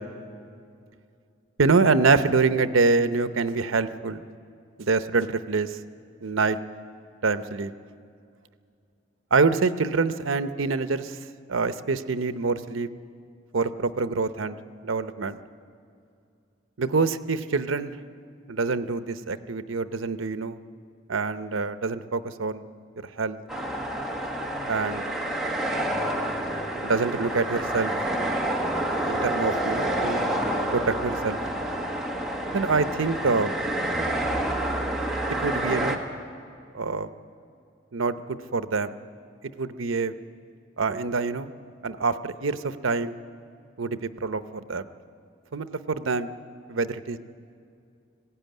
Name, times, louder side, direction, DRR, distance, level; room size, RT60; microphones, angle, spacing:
voice 1, 1.6-4.2 4.8-5.8 6.2-6.6 7.2-7.7 9.3-11.2 11.5-12.9 13.5-14.6 14.8-15.4 16.8-17.9 18.5-20.6 21.1-22.6 23.2-23.4 24.7-25.2 26.8-27.9 29.1-30.3 30.7-31.4 32.5-33.5 35.4-36.0 36.7-37.1 37.9-38.9 39.6-40.1 40.8-41.5 41.8-43.1 43.8-44.8 45.5-46.3 46.7-47.2, right 4 dB, 90° right, 11 dB, 0.8 m, -25 dB
sound 1, 23.5-36.0, right 1 dB, ahead, 1.4 m, -28 dB
19.5 x 16.0 x 9.3 m, 2.4 s
head